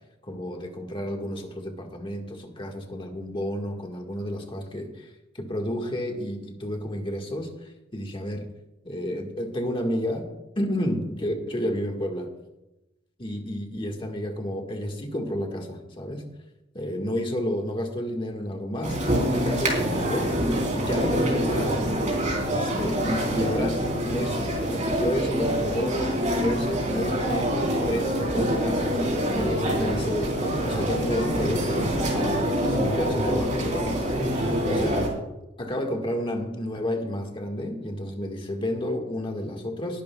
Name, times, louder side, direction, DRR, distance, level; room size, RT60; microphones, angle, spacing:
voice 1, 0.2-8.5 8.8-10.3 10.5-12.3 13.2-16.2 16.7-20.4 20.7-22.1 22.5-27.5 27.8-35.1 35.6-40.0, equal, 25° left, 3 dB, 1.6 m, -31 dB
sound 1, 18.8-35.1, equal, 40° right, 3.8 m, -25 dB
20.5 x 11.5 x 2.3 m, 0.96 s
head